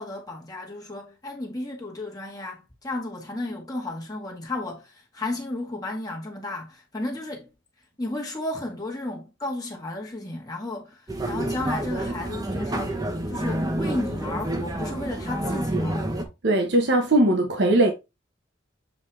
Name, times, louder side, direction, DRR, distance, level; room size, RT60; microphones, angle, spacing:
voice 1, 0.0-7.5 7.8-16.3, left 2 dB, 20° left, 1.3 m, -33 dB
sound 1, 11.1-16.2, right 1 dB, 20° right, 0.9 m, -28 dB
voice 2, 16.4-17.9, right 1 dB, 60° right, 1.0 m, -20 dB
7.3 x 3.9 x 3.2 m
head